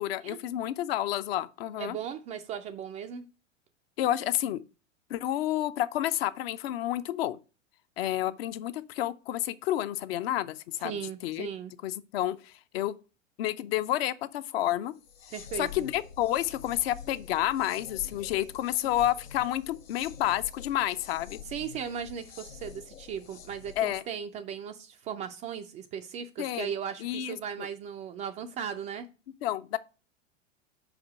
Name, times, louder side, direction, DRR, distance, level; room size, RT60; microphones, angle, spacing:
voice 1, 0.0-2.0 4.0-4.6 5.1-7.4 8.0-10.9 11.2-11.5 11.8-12.9 13.4-14.9 15.6-21.4 23.8-24.0 26.4-26.7 27.0-27.4 29.4-29.8, left 13 dB, 50° left, 0.6 m, -30 dB
voice 2, 1.8-3.3 10.8-11.7 15.3-15.9 21.4-29.1, right 8 dB, 20° right, 0.3 m, -37 dB
sound 1, 14.9-24.0, left 8 dB, 90° left, 0.7 m, -47 dB
5.2 x 5.0 x 6.0 m
figure-of-eight pair, 95°, 38 cm